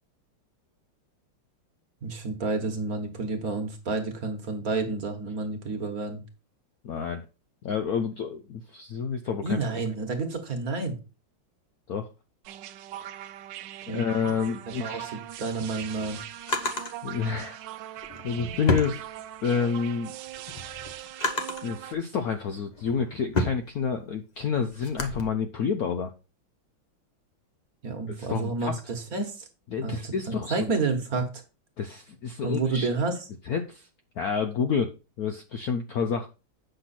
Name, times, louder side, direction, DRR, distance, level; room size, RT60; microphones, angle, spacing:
voice 1, 2.0-6.2 9.4-11.0 13.9-14.3 14.7-16.2 27.8-29.5 29.8-30.1 30.5-31.4 32.4-33.3, right 3 dB, 50° right, 5 dB, 1.6 m, -30 dB
voice 2, 6.8-7.2 7.6-9.6 11.9-12.1 13.9-15.1 17.0-17.6 18.2-19.0 19.4-20.1 21.6-26.1 28.2-28.8 29.7-30.7 31.8-32.9 33.5-33.9 34.2-36.3, left 6 dB, 65° left, 7 dB, 0.9 m, -29 dB
sound 1, 12.4-21.9, right 12 dB, 70° right, 1.1 m, -41 dB
Drawer open or close, 15.3-16.9 18.0-19.6 20.1-21.7 22.4-25.2, left 2 dB, 40° left, 0.5 m, -32 dB
8.0 x 5.9 x 4.2 m, 0.30 s
omnidirectional pair, 2.2 m